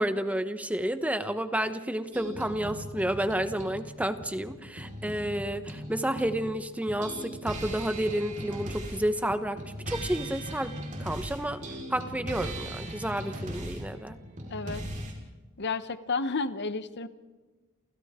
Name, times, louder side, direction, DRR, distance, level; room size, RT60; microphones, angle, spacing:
voice 1, 0.0-10.7 11.0-11.6 11.9-14.2, right 1 dB, 5° right, 9 dB, 1.0 m, -30 dB
sound 1, 2.1-6.5 6.9-15.1, equal, 35° right, 4.6 m, -39 dB
voice 2, 14.5-14.8 15.6-17.1, left 4 dB, 55° left, 12 dB, 1.0 m, -31 dB
29.5 x 28.5 x 3.7 m, 1.2 s
head